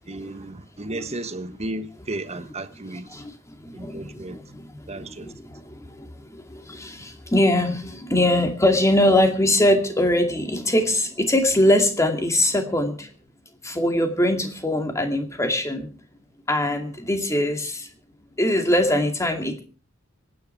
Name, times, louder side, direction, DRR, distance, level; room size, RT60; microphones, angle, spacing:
voice 1, 0.0-3.2 3.7-4.4 4.9-5.3, right 2 dB, 30° right, 1.3 m, -34 dB
voice 2, 3.1-13.1 13.6-15.9 16.5-17.9 18.4-19.6, left 1 dB, 15° left, 2.4 m, -22 dB
25.5 x 9.9 x 4.6 m
head